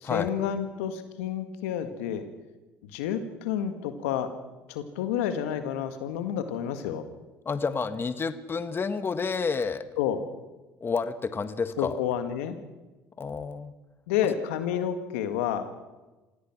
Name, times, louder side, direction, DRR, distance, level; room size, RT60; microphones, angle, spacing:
voice 1, 0.0-2.2 2.9-4.3 4.7-7.0 10.0-10.2 11.8-12.6 14.1-15.7, left 9 dB, 90° left, 9 dB, 1.8 m, -29 dB
voice 2, 7.4-9.8 10.8-12.0 13.2-13.7, left 5 dB, 30° left, 11 dB, 1.6 m, -30 dB
27.0 x 16.5 x 6.1 m, 1.1 s
supercardioid pair, 75°, 7 cm